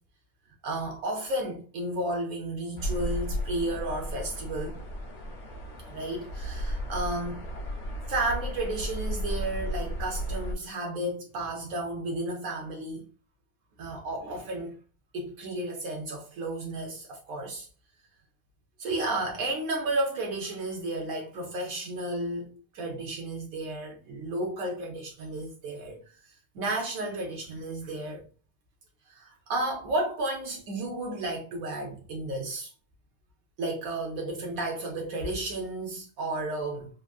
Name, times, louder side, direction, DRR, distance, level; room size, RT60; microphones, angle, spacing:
voice 1, 0.6-4.8 5.8-7.4 8.1-13.1 13.8-14.8 15.1-17.7 18.8-28.2 29.1-32.7 33.6-36.9, right 1 dB, 80° right, 0.7 m, -33 dB
sound 1, 2.8-10.5, equal, 75° left, 0.6 m, -34 dB
3.4 x 2.4 x 2.3 m
omnidirectional pair, 2.3 m